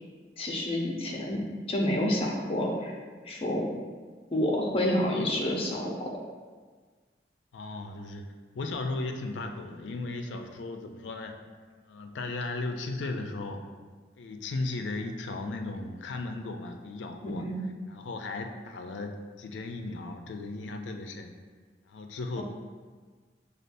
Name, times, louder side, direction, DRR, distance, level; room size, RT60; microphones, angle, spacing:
voice 1, 0.4-1.4 1.7-2.9 3.2-3.7 4.3-6.1 17.2-17.6 22.4-22.5, left 1 dB, 30° left, -1 dB, 0.6 m, -29 dB
voice 2, 7.5-8.3 8.6-11.4 11.9-13.6 14.2-17.5 17.9-21.3 21.9-22.4, left 2 dB, 90° left, 5 dB, 0.4 m, -36 dB
6.4 x 2.3 x 2.6 m, 1.5 s
head